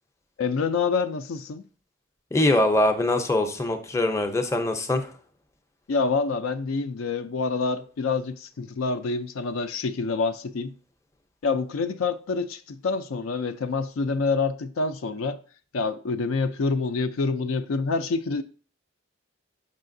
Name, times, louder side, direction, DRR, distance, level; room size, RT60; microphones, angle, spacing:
voice 1, 0.4-1.6 5.9-10.7 11.4-15.4 15.7-18.4, left 4 dB, 80° left, 0.4 m, -27 dB
voice 2, 2.3-5.1, left 1 dB, 15° left, 0.6 m, -23 dB
6.7 x 5.6 x 2.6 m
head